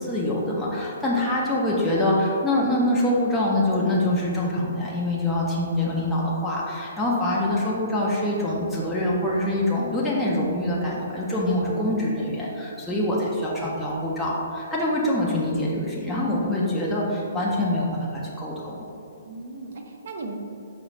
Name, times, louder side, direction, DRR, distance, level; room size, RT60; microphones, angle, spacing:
voice 1, 0.0-18.9, left 1 dB, ahead, -7 dB, 0.4 m, -25 dB
voice 2, 8.5-8.9 12.9-13.2 19.2-20.4, right 3 dB, 50° right, 3 dB, 0.5 m, -38 dB
5.0 x 3.2 x 3.1 m, 2.6 s
hypercardioid pair, 170°, 0 cm